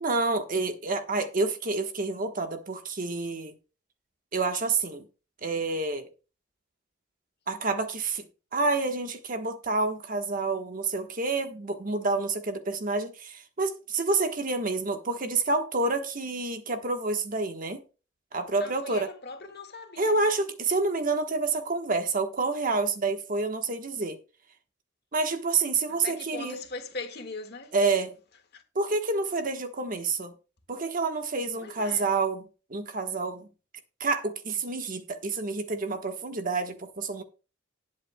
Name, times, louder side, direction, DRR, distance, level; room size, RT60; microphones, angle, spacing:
voice 1, 0.0-3.5 4.3-5.1 5.4-6.1 7.5-8.3 8.5-17.8 18.3-19.1 20.0-24.2 25.1-26.6 27.7-28.1 28.7-30.3 30.7-32.4 32.7-33.5 34.0-37.2, right 3 dB, 45° right, 1.2 m, -28 dB
voice 2, 18.6-20.2 25.9-27.8 28.5-28.6 31.6-32.1, left 3 dB, 55° left, 1.8 m, -40 dB
19.0 x 7.5 x 2.2 m
head